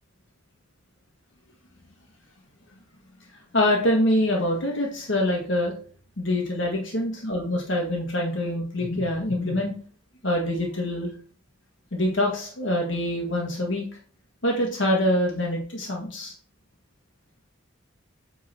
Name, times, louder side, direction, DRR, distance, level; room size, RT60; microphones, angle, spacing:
voice 1, 3.5-5.7 6.2-9.7 10.2-11.1 11.9-13.8 14.4-16.3, left 1 dB, 65° left, -1 dB, 1.6 m, -25 dB
8.4 x 3.9 x 4.3 m, 0.42 s
head